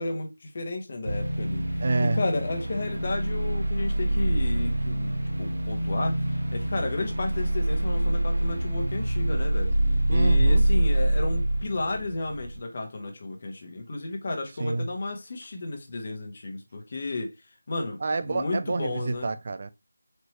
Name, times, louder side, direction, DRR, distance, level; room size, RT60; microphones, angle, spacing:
voice 1, 0.0-6.2 6.5-9.8 10.1-17.3 17.7-19.3, left 2 dB, 40° left, 1.2 m, -33 dB
sound 1, 1.1-12.6, right 1 dB, 90° right, 1.2 m, -25 dB
voice 2, 1.8-2.2 10.1-10.7 14.6-14.9 18.0-19.7, right 3 dB, 40° right, 0.4 m, -28 dB
4.4 x 3.0 x 3.0 m
figure-of-eight pair, 170°, 0 cm